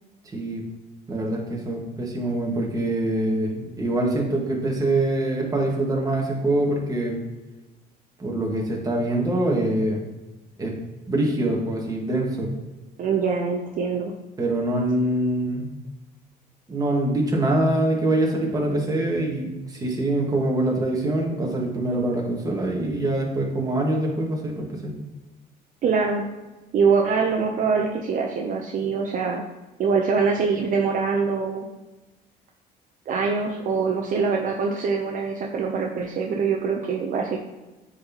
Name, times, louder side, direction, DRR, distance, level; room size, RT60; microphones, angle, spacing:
voice 1, 1.1-7.2 8.2-10.0 10.6-10.7 11.1-12.5 14.4-15.7 16.7-24.9, right 1 dB, 20° right, -1 dB, 1.6 m, -24 dB
voice 2, 13.0-14.1 25.8-26.3 26.7-29.4 29.8-31.7 33.1-37.4, right 5 dB, 50° right, 1 dB, 0.7 m, -24 dB
9.2 x 4.1 x 3.0 m, 1.1 s
cardioid pair, 110°, 17 cm